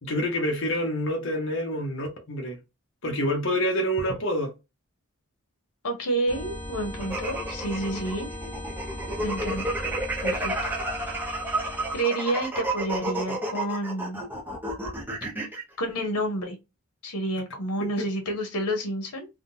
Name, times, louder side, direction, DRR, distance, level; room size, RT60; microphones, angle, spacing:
voice 1, 0.0-2.6 3.0-4.5 18.0-18.1, equal, 55° left, 0.9 m, -27 dB
voice 2, 5.8-8.3 9.2-9.8 10.2-10.7 11.9-14.2 15.8-16.6 17.0-19.3, right 1 dB, 90° left, 1.0 m, -29 dB
sound 1, 6.3-12.0, equal, 30° left, 0.9 m, -38 dB
sound 2, 7.0-15.6, right 2 dB, 10° right, 0.6 m, -31 dB
3.6 x 2.2 x 2.6 m
head